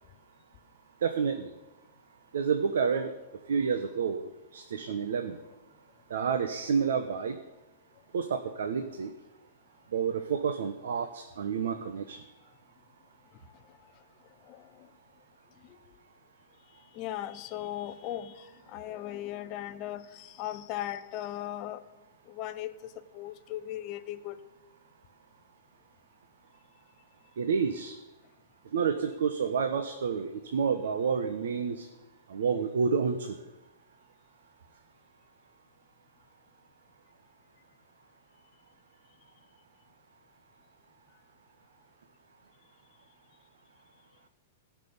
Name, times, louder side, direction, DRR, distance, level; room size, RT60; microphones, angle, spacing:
voice 1, 1.0-1.5 2.3-3.1 3.5-5.4 6.1-7.4 8.1-9.1 9.9-12.2 27.4-27.9 28.7-31.9 32.3-33.4, right 6 dB, 80° right, 8 dB, 1.1 m, -29 dB
voice 2, 14.4-14.9 15.7-15.8 16.9-21.8 22.3-24.4, left 12 dB, 25° left, 10 dB, 0.7 m, -38 dB
16.5 x 6.1 x 8.6 m, 1.1 s
supercardioid pair, 175°, 0 cm